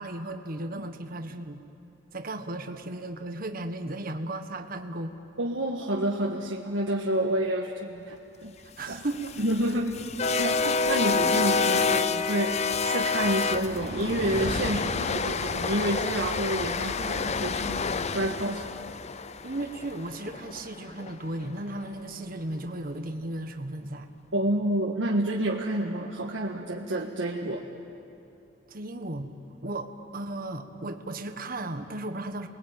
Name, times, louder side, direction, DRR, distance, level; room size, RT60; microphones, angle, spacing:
voice 1, 0.0-1.6 2.1-5.2 8.8-9.4 19.4-24.1 28.7-29.3 29.6-32.5, right 1 dB, 50° right, 7 dB, 1.5 m, -35 dB
voice 2, 5.4-8.5 8.9-9.0 9.4-10.0 10.4-17.9 18.1-18.7 24.3-27.6, right 1 dB, 80° right, -2 dB, 1.6 m, -29 dB
sound 1, 8.9-21.1, left 4 dB, 35° left, 0.6 m, -28 dB
29.5 x 21.0 x 9.1 m, 2.8 s
head